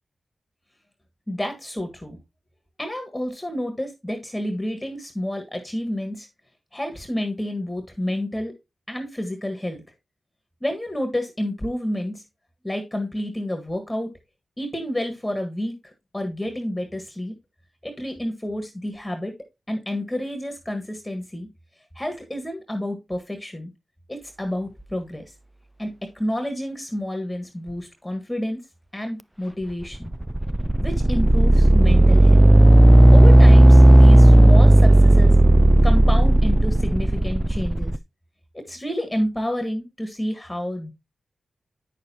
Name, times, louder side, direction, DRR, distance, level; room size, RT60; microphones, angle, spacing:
voice 1, 1.3-2.2 2.8-6.3 6.7-8.5 8.9-9.8 10.6-12.2 12.6-14.1 14.6-15.7 16.1-17.3 17.8-19.3 19.7-21.5 21.9-23.7 24.1-25.3 25.8-28.6 28.9-30.1 30.8-32.5 33.1-35.3 35.8-37.9 38.5-40.9, left 1 dB, 15° left, 5 dB, 1.6 m, -29 dB
sound 1, 29.9-38.0, right 1 dB, 10° right, 0.4 m, -12 dB
8.5 x 6.5 x 2.8 m, 0.23 s
cardioid pair, 40°, 0 cm